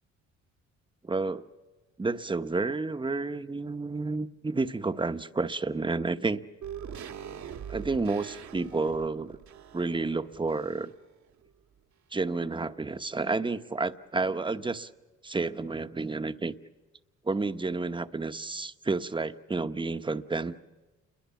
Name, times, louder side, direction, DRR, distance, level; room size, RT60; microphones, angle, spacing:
voice 1, 1.0-1.4 2.0-6.4 7.7-9.4 9.7-10.9 12.1-14.9 15.2-16.5 17.2-20.5, right 3 dB, 15° right, 11 dB, 1.0 m, -30 dB
sound 1, 6.6-11.1 11.4-11.5, right 8 dB, 65° right, 1.7 m, -43 dB
28.0 x 22.0 x 7.1 m, 1.2 s
cardioid pair, 90°, 30 cm